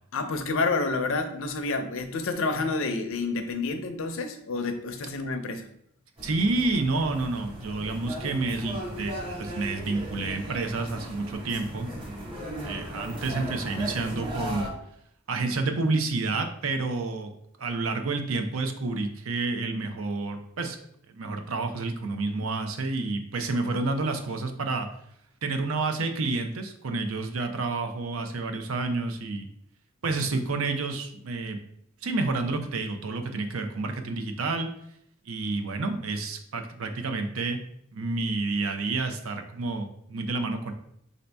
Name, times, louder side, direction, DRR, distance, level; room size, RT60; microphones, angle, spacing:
voice 1, 0.1-5.7, left 3 dB, 65° left, 7 dB, 0.5 m, -29 dB
sound 1, 6.2-14.7, equal, 25° right, 1.3 m, -37 dB
voice 2, 6.2-14.7 15.3-17.3 17.6-20.8 21.1-24.9 25.4-29.5 30.0-31.6 32.0-34.7 35.2-37.6 37.9-40.7, right 3 dB, 70° right, 6 dB, 0.6 m, -29 dB
5.1 x 2.8 x 3.4 m, 0.72 s
head